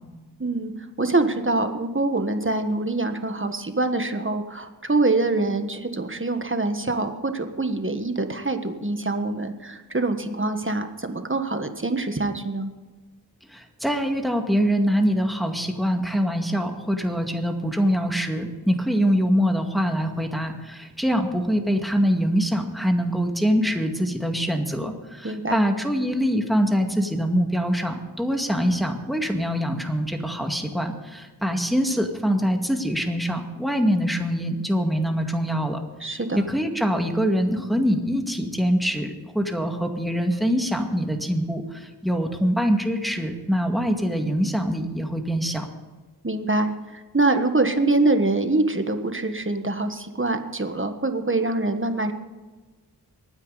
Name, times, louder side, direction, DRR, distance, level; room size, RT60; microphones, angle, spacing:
voice 1, 0.4-0.7 1.0-12.7 25.2-25.6 36.0-36.5 46.2-52.1, right 2 dB, 30° right, 7 dB, 1.5 m, -24 dB
voice 2, 13.5-35.8 36.3-45.7, equal, ahead, 3 dB, 2.1 m, -24 dB
23.5 x 9.8 x 4.1 m, 1.3 s
wide cardioid pair, 40°, 40 cm